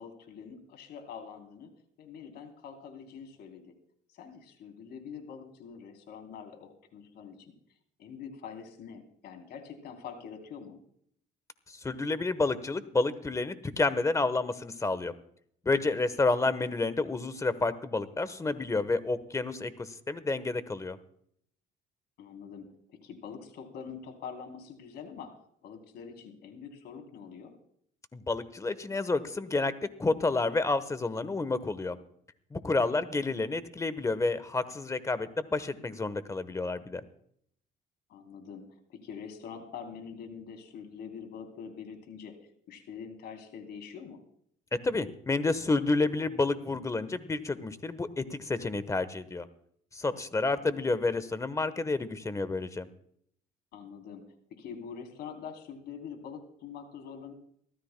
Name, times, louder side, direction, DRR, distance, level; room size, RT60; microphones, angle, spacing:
voice 1, 0.0-1.7 2.0-3.7 4.1-7.5 8.0-10.8 22.2-25.3 25.6-27.5 33.0-33.4 38.1-42.3 42.7-44.2 50.4-50.8 53.7-54.3 54.6-57.3, left 6 dB, 70° left, 5 dB, 3.4 m, -45 dB
voice 2, 11.7-15.1 15.6-21.0 28.1-32.0 32.5-37.0 44.8-49.5 49.9-52.9, left 3 dB, 20° left, 14 dB, 1.1 m, -30 dB
23.5 x 15.0 x 2.2 m, 0.68 s
cardioid pair, 110°, 17 cm